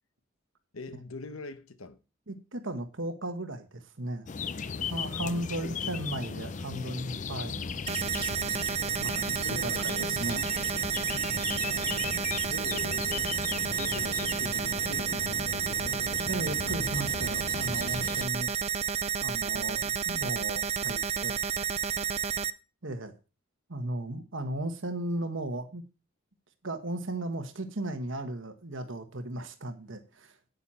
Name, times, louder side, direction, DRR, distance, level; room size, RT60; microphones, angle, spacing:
voice 1, 0.7-2.0 4.6-4.9 5.2-5.9 9.4-10.5 11.6-12.2 12.5-13.3 13.7-16.3, left 3 dB, 80° left, 1.0 m, -44 dB
voice 2, 2.3-4.3 4.9-7.8 9.0-9.7 10.0-10.4 16.3-18.5 19.2-21.4 22.8-23.1 23.7-25.8 26.6-30.3, right 1 dB, 65° right, 1.4 m, -36 dB
sound 1, 4.3-18.3, left 5 dB, 35° left, 0.4 m, -37 dB
sound 2, 7.9-22.5, right 7 dB, 30° right, 0.4 m, -31 dB
9.5 x 9.2 x 4.2 m
head